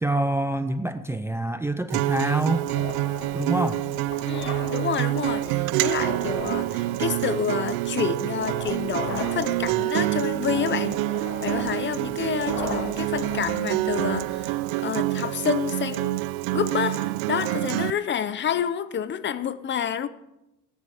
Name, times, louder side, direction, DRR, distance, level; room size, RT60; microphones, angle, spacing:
voice 1, 0.0-2.7 3.3-3.9, right 1 dB, 5° right, 0.5 m, -26 dB
Acoustic guitar, 1.9-17.9, right 19 dB, 85° right, 0.5 m, -27 dB
sound 1, 2.5-14.5, left 3 dB, 50° left, 4.6 m, -38 dB
voice 2, 4.3-11.0 11.4-16.2 16.5-20.1, left 8 dB, 30° left, 0.7 m, -29 dB
18.0 x 10.0 x 4.9 m
cardioid pair, 130°, 36 cm